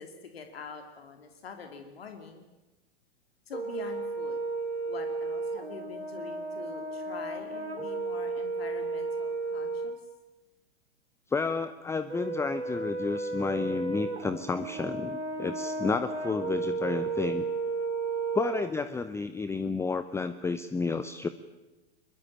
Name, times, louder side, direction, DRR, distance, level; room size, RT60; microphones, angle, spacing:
voice 1, 0.0-2.4 3.5-4.4 4.9-10.0, left 5 dB, 70° left, 6 dB, 2.7 m, -45 dB
Brass instrument, 3.5-10.0 12.1-18.7, right 3 dB, 85° right, 2.8 m, -33 dB
voice 2, 11.3-17.4 18.3-21.3, left 4 dB, 10° left, 12 dB, 0.8 m, -31 dB
22.5 x 22.0 x 8.6 m, 1.1 s
figure-of-eight pair, 100°, 31 cm